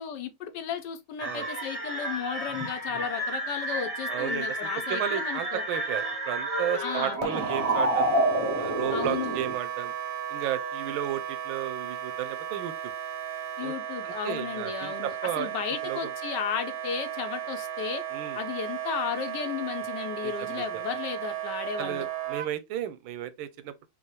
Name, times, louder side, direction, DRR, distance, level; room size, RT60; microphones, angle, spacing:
voice 1, 0.0-5.6 6.8-7.2 8.9-9.4 13.6-18.0 18.3-22.1, left 8 dB, 70° left, 1.2 m, -34 dB
sound 1, 1.2-9.5, right 1 dB, 25° right, 0.8 m, -30 dB
voice 2, 4.1-8.1 8.6-9.9 10.3-12.7 13.6-13.7 14.0-15.5 15.8-16.1 18.1-18.4 20.2-20.8 21.8-23.9, right 11 dB, 90° right, 1.5 m, -34 dB
Wind instrument woodwind instrument, 7.2-22.5, right 10 dB, 75° right, 1.2 m, -35 dB
5.6 x 2.4 x 3.1 m
omnidirectional pair, 2.1 m